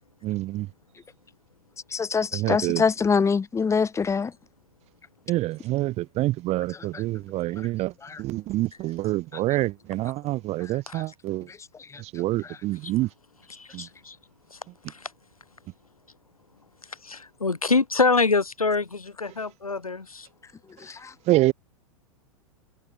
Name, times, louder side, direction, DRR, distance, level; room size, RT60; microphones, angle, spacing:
voice 1, 0.2-0.7 2.3-2.8 5.3-7.9 8.2-11.5 12.0-13.1 13.7-13.9 21.3-21.5, right 17 dB, 40° right, 4.9 m, -26 dB
voice 2, 1.9-4.3 8.0-8.2 10.9-11.0 11.9-12.0 13.8-13.9 20.8-21.1, left 5 dB, 15° left, 6.6 m, -24 dB
voice 3, 13.6-14.2 14.5-14.6 14.9-15.1 17.0-20.3, left 4 dB, 85° left, 6.4 m, -25 dB
figure-of-eight pair, 100°, 18 cm